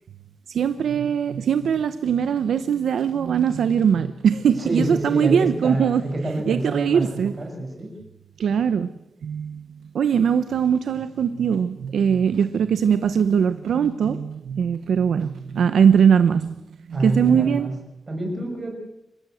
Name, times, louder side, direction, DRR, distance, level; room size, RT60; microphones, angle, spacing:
voice 1, 0.5-7.3 8.4-8.9 9.2-9.6 9.9-16.6 16.9-17.7, right 7 dB, 85° right, 1.0 m, -21 dB
voice 2, 4.6-7.9 16.9-17.7 18.1-18.8, right 1 dB, 25° right, 6.6 m, -27 dB
27.0 x 15.0 x 7.9 m
wide cardioid pair, 170°, 0 cm